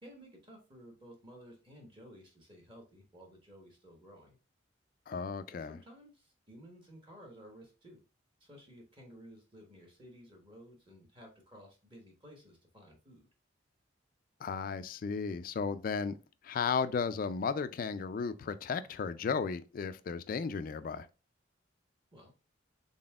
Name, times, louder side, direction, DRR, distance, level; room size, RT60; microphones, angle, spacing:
voice 1, 0.0-4.4 5.5-8.0 8.4-13.3 22.1-22.3, equal, 25° right, 1.1 m, -55 dB
voice 2, 5.1-5.8 14.4-16.1 16.4-21.1, left 5 dB, 45° left, 0.3 m, -34 dB
4.0 x 3.6 x 2.3 m
head